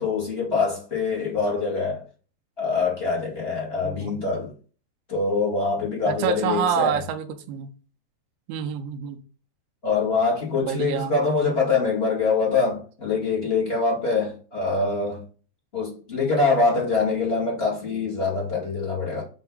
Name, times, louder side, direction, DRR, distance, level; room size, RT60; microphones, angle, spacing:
voice 1, 0.0-2.0 2.6-4.5 5.1-7.0 9.8-15.2 15.7-19.2, left 4 dB, 25° left, 1.5 m, -24 dB
voice 2, 3.8-4.2 6.1-7.7 8.5-9.2 10.6-11.1, right 8 dB, 80° right, 2.6 m, -27 dB
7.7 x 3.5 x 5.3 m
omnidirectional pair, 4.6 m